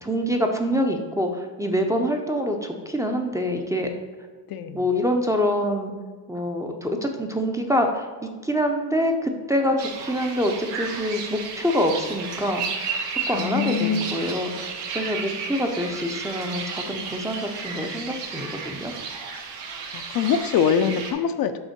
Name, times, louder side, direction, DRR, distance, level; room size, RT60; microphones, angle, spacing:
voice 1, 0.0-3.9 4.7-5.9 6.3-8.1 8.4-18.9, equal, 10° right, 3 dB, 0.5 m, -26 dB
voice 2, 4.5-4.8 13.3-14.3 19.9-21.5, left 7 dB, 55° left, 9 dB, 0.5 m, -24 dB
sound 1, 9.8-21.1, right 5 dB, 80° right, 1.2 m, -33 dB
5.5 x 3.6 x 5.8 m, 1.5 s
cardioid pair, 120°, 42 cm